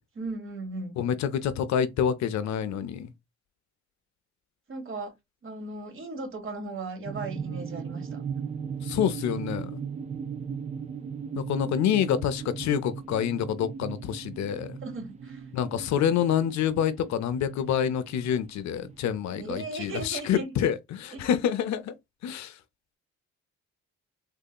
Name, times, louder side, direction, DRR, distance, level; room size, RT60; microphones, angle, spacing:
voice 1, 0.1-1.0 4.7-5.1 5.4-8.2 14.8-15.4 19.4-20.5 21.1-21.2, right 3 dB, 45° right, 1.3 m, -37 dB
voice 2, 1.0-3.1 8.8-9.8 11.3-14.8 15.5-21.9 22.2-22.6, left 9 dB, 65° left, 0.5 m, -27 dB
sound 1, 7.0-19.1, right 7 dB, 25° right, 0.4 m, -38 dB
3.6 x 2.7 x 2.2 m
cardioid pair, 90°, 30 cm